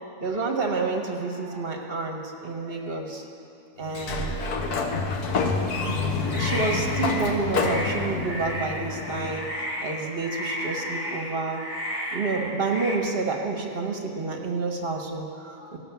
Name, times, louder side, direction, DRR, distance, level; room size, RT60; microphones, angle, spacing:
voice 1, 0.2-3.2 3.8-4.4 5.8-6.1 6.4-9.5 9.8-11.6 12.1-15.8, right 3 dB, 40° right, 2 dB, 1.2 m, -29 dB
Sliding door, 3.9-9.5, left 4 dB, 85° left, 1.5 m, -28 dB
sound 1, 6.2-13.0, equal, 65° left, 1.7 m, -33 dB
17.0 x 5.8 x 7.0 m, 2.7 s
omnidirectional pair, 1.6 m